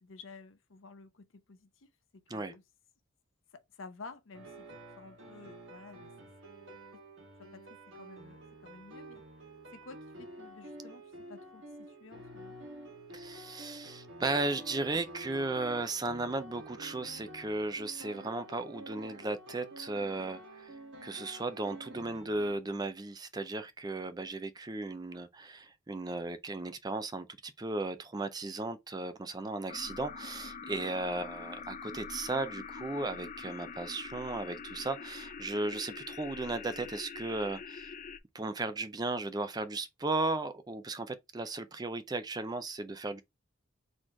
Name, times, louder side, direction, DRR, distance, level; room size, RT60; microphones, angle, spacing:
voice 1, 0.0-2.6 3.5-4.7 5.0-6.1 7.4-9.2 9.7-12.6 30.6-30.8, left 3 dB, 75° left, 0.8 m, -52 dB
sound 1, 4.3-22.6, right 1 dB, 65° right, 1.7 m, -49 dB
voice 2, 13.1-20.8 21.0-37.9 38.3-43.2, right 2 dB, 20° right, 0.4 m, -36 dB
sound 2, 29.7-38.2, left 5 dB, 40° left, 0.4 m, -44 dB
4.2 x 3.1 x 3.3 m
head